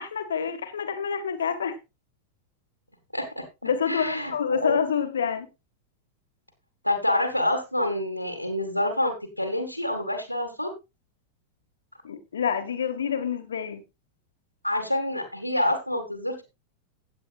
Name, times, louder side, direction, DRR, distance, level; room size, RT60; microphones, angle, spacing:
voice 1, 0.0-1.8 3.6-5.5 12.0-13.8, left 7 dB, 65° left, 1.7 m, -27 dB
voice 2, 3.1-3.5 3.9-4.3 4.6-4.8 6.8-10.7 14.6-16.4, left 1 dB, 90° left, 1.9 m, -27 dB
15.5 x 8.9 x 2.5 m
figure-of-eight pair, 90°, 0 cm